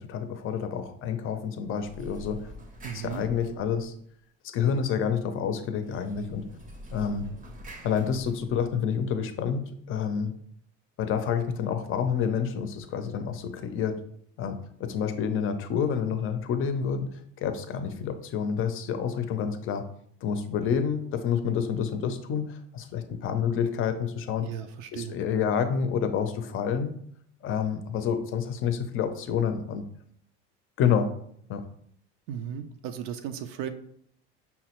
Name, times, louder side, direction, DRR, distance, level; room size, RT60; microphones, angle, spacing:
voice 1, 0.0-2.4 2.9-3.9 4.5-6.5 6.9-7.3 7.8-10.3 11.0-14.0 14.4-17.1 17.4-19.8 20.2-24.5 24.9-26.9 27.4-29.8 30.8-31.1 31.5-31.6, left 7 dB, 45° left, 9 dB, 0.5 m, -28 dB
sound 1, 1.7-4.2 5.8-9.0, equal, 25° right, 0.6 m, -46 dB
voice 2, 2.8-3.3 24.4-25.2 32.3-33.7, right 9 dB, 75° right, 9 dB, 0.5 m, -36 dB
5.5 x 2.0 x 2.9 m, 0.67 s
cardioid pair, 115°, 30 cm